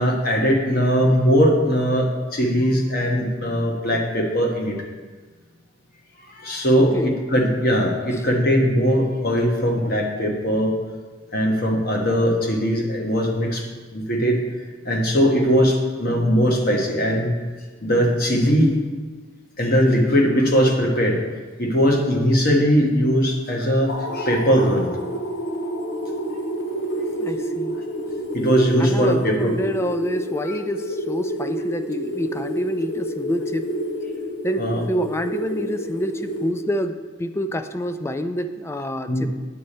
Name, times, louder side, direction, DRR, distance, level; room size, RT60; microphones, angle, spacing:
voice 1, 0.0-4.8 6.2-10.7 11.3-13.6 13.9-14.4 14.8-17.4 17.8-18.8 19.6-21.2 21.6-24.9 28.3-29.5 30.4-30.5 34.6-34.8 39.1-39.3, equal, 50° left, 0 dB, 1.4 m, -20 dB
voice 2, 6.8-7.1 27.2-27.8 28.8-33.7 34.4-39.3, equal, 15° left, 9 dB, 0.3 m, -27 dB
sound 1, 23.9-37.1, right 1 dB, 70° left, 1.0 m, -29 dB
9.3 x 4.3 x 6.6 m, 1.4 s
head